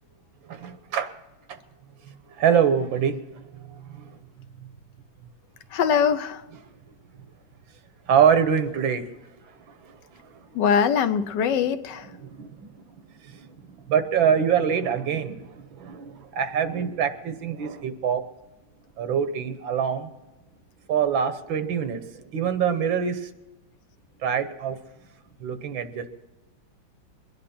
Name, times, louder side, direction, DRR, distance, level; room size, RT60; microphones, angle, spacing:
voice 1, 0.5-1.1 1.5-1.6 2.4-4.1 8.1-9.0 12.2-12.7 13.3-13.4 13.9-18.2 19.0-20.1 20.9-23.3 24.2-24.8 25.4-26.1, right 8 dB, 90° right, 9 dB, 1.8 m, -24 dB
voice 2, 5.7-6.4 10.5-12.1, left 7 dB, 70° left, 11 dB, 1.3 m, -22 dB
22.5 x 10.5 x 4.3 m, 1.1 s
omnidirectional pair, 2.1 m